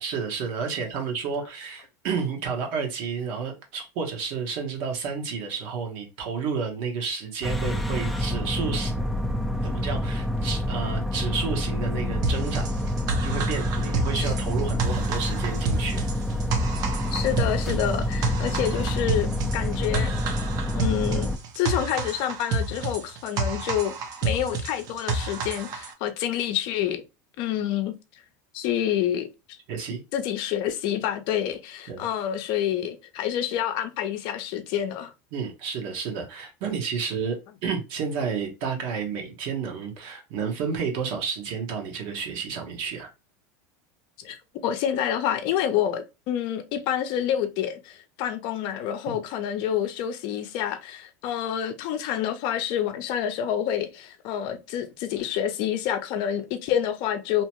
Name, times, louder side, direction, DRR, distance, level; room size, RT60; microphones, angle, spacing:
voice 1, 0.0-8.9 9.6-12.7 13.2-16.1 29.7-30.0 31.9-32.1 35.3-37.4 37.6-43.1 49.1-49.2, right 6 dB, 60° right, 1.0 m, -31 dB
sound 1, 7.4-21.4, left 1 dB, ahead, 0.4 m, -27 dB
sound 2, 12.2-25.9, right 3 dB, 45° right, 0.6 m, -30 dB
voice 2, 17.1-20.1 20.7-23.9 24.2-27.0 27.4-27.9 28.5-29.6 30.1-35.1 44.2-57.4, left 10 dB, 55° left, 0.5 m, -28 dB
2.8 x 2.2 x 2.9 m
supercardioid pair, 120°, 9 cm